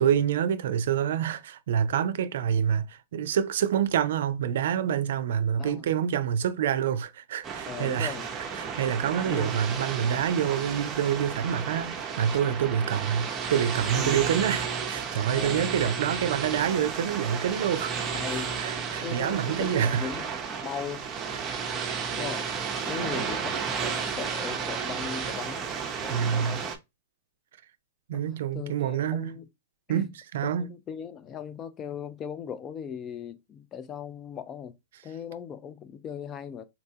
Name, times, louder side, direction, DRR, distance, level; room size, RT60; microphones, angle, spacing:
voice 1, 0.0-8.2 8.6-20.1 21.4-21.7 23.0-23.3 26.1-26.6 28.1-29.4 29.9-30.7, right 9 dB, 70° right, 0.4 m, -27 dB
sound 1, 7.4-26.8, right 6 dB, 20° right, 0.7 m, -33 dB
voice 2, 7.7-8.3 9.3-9.5 10.1-10.3 14.0-14.1 15.3-15.7 18.1-18.5 19.0-20.3 20.6-21.0 22.1-25.7 26.0-26.7 28.1-29.5 29.9-30.1 30.4-34.8 35.0-36.6, left 8 dB, 25° left, 0.5 m, -38 dB
4.0 x 2.2 x 2.7 m
hypercardioid pair, 125°, 0 cm